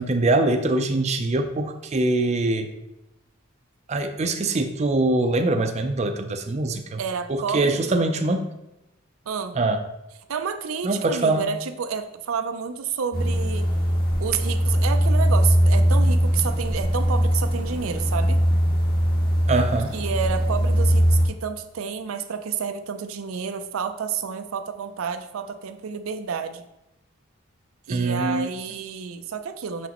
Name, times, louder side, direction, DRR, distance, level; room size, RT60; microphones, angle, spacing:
voice 1, 0.0-2.7 3.9-7.0 7.3-8.5 9.6-9.8 10.8-11.4 19.5-20.0 27.9-28.5, right 2 dB, 35° right, 6 dB, 0.5 m, -23 dB
voice 2, 7.0-7.9 9.3-9.6 10.3-13.7 14.2-18.4 19.9-26.7 27.9-29.9, right 6 dB, 85° right, 9 dB, 0.5 m, -30 dB
sound 1, 13.1-21.3, equal, 50° left, 1.6 m, -21 dB
6.0 x 6.0 x 2.9 m, 0.89 s
head